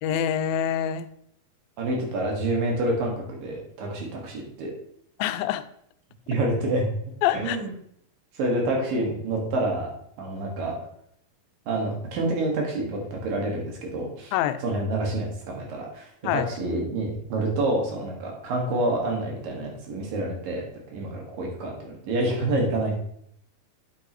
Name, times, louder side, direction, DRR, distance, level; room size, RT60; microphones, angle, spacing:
voice 1, 0.0-1.1 5.2-5.6 7.2-7.6 14.3-14.6 16.2-16.5, left 10 dB, 90° left, 12 dB, 2.3 m, -25 dB
voice 2, 1.8-4.7 6.3-6.9 7.3-7.7 8.3-9.9 10.2-10.7 11.7-14.3 14.6-20.6 20.9-22.9, right 2 dB, 75° right, 0 dB, 3.5 m, -27 dB
9.1 x 7.8 x 3.1 m, 0.69 s
omnidirectional pair, 4.1 m